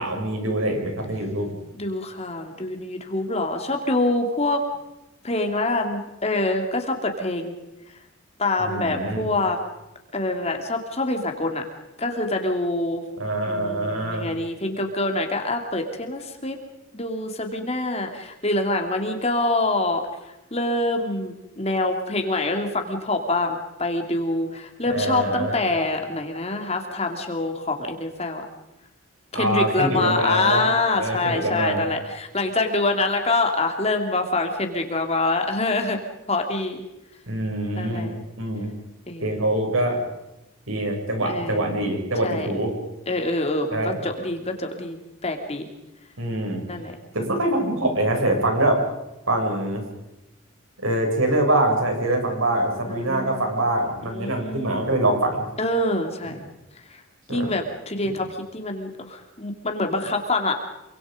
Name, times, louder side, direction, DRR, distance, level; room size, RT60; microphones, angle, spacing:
voice 1, 0.0-1.5 8.6-9.3 13.2-14.3 24.9-25.5 29.3-30.6 30.9-31.9 37.3-38.1 38.4-38.7 39.2-40.0 40.7-42.7 43.7-44.0 46.2-46.6 47.1-48.8 49.3-49.8 50.8-55.5 57.3-57.5, right 1 dB, 80° right, 2 dB, 7.5 m, -24 dB
voice 2, 1.7-4.6 5.2-7.5 8.4-9.6 10.1-11.6 12.0-13.0 13.5-16.6 16.9-20.0 20.5-28.4 29.3-36.0 36.3-36.8 37.8-38.2 39.1-39.4 41.3-41.7 42.2-42.5 43.1-45.7 46.6-46.9 52.8-53.6 54.1-54.9 55.6-56.4 56.9-57.0 57.3-60.5, left 2 dB, 30° left, 4 dB, 3.2 m, -25 dB
27.5 x 25.5 x 5.4 m, 0.95 s
head